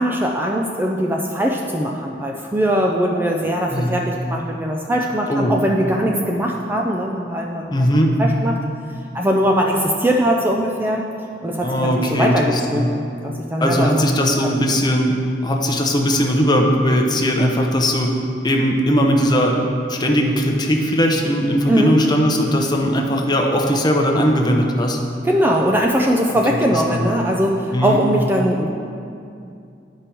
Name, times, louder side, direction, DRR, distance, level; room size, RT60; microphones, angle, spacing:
voice 1, 0.0-7.7 8.2-8.6 9.1-11.0 11.4-14.1 21.7-22.0 25.2-28.7, equal, 10° right, 0 dB, 0.4 m, -20 dB
voice 2, 7.7-8.1 11.6-12.9 13.6-15.1 15.4-18.1 18.4-19.6 19.9-25.0 26.9-27.1 27.7-28.0, equal, 25° left, 1 dB, 0.8 m, -18 dB
9.7 x 5.2 x 4.4 m, 2.5 s
head